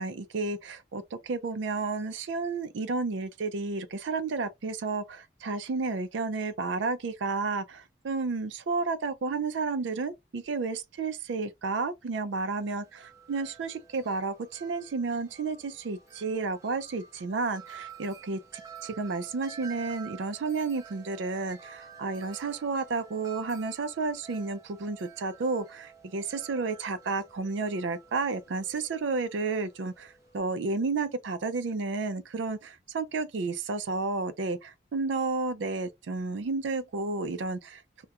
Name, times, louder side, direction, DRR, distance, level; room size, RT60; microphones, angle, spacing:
voice 1, 0.0-18.4 18.8-38.0, right 4 dB, 75° right, 0.4 m, -32 dB
Wind chime, 12.5-30.4, right 7 dB, 15° right, 0.6 m, -50 dB
2.4 x 2.1 x 2.8 m
head